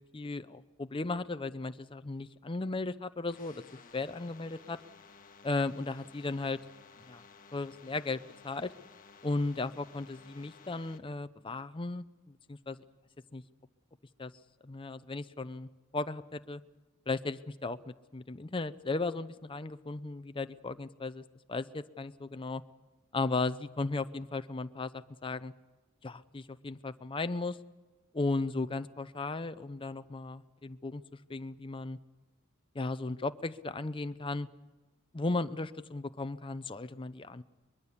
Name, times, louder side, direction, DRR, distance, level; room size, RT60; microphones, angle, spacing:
voice 1, 0.1-4.8 5.4-6.6 7.1-7.2 7.5-8.7 9.2-12.8 13.3-13.4 14.2-14.3 14.6-16.6 17.1-22.6 23.1-25.5 26.0-27.6 28.1-31.0 31.3-32.0 32.7-34.5 35.1-37.4, left 3 dB, 25° left, 12 dB, 0.7 m, -36 dB
sound 1, 3.3-11.0, left 5 dB, 40° left, 1.4 m, -56 dB
23.0 x 22.0 x 7.1 m, 1.2 s
head